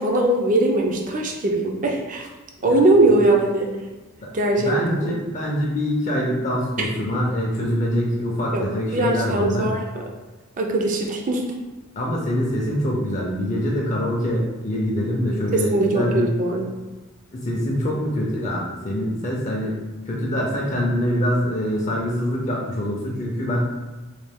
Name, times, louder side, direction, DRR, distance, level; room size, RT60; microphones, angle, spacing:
voice 1, 0.0-2.3 2.6-3.7 4.3-5.1 6.8-6.9 8.5-8.7 8.9-10.0 10.6-11.4 15.5-16.7, right 2 dB, 35° right, 1 dB, 0.4 m, -21 dB
voice 2, 4.6-9.7 12.0-16.4 17.3-19.8 20.1-23.6, equal, 35° left, -3 dB, 0.5 m, -24 dB
3.2 x 2.3 x 3.4 m, 1.2 s
head